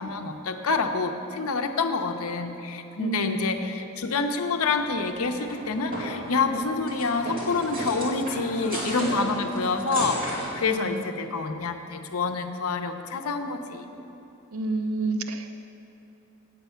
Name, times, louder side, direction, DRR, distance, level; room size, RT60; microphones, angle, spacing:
voice 1, 0.0-13.8, left 4 dB, 85° left, 6 dB, 0.7 m, -27 dB
voice 2, 3.0-3.4 10.7-11.1 14.5-15.5, right 3 dB, 85° right, 7 dB, 0.6 m, -29 dB
sound 1, 4.7-10.6, right 1 dB, 45° right, 2.2 m, -35 dB
8.3 x 8.1 x 5.6 m, 2.9 s
head